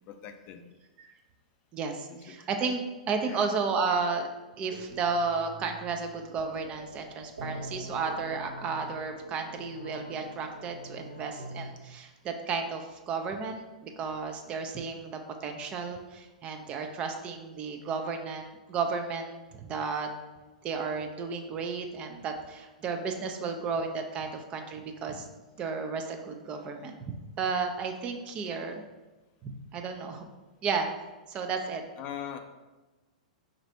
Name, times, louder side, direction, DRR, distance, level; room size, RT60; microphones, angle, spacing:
voice 1, 0.1-0.6 2.1-2.4 3.2-3.5 7.3-7.4 32.0-32.4, left 9 dB, 30° left, 7 dB, 0.4 m, -41 dB
voice 2, 1.7-4.3 4.6-20.1 20.6-25.3 25.6-28.8 29.4-30.3 30.6-30.9 31.3-31.8, right 5 dB, 25° right, 5 dB, 0.4 m, -33 dB
sound 1, 4.3-11.7, equal, 70° right, 0.9 m, -45 dB
3.9 x 2.6 x 4.4 m, 1.1 s
figure-of-eight pair, 100°, 4 cm